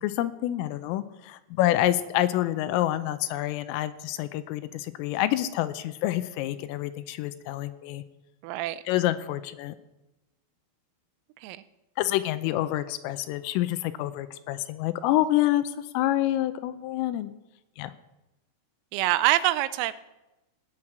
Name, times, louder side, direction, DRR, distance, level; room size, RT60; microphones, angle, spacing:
voice 1, 0.0-8.0 8.9-9.7 12.0-17.3 17.8-17.9, left 14 dB, 80° left, 12 dB, 3.2 m, -27 dB
voice 2, 8.4-8.8 11.4-11.6 18.9-19.9, right 15 dB, 85° right, 15 dB, 3.3 m, -25 dB
18.5 x 9.3 x 6.0 m, 0.97 s
omnidirectional pair, 6.0 m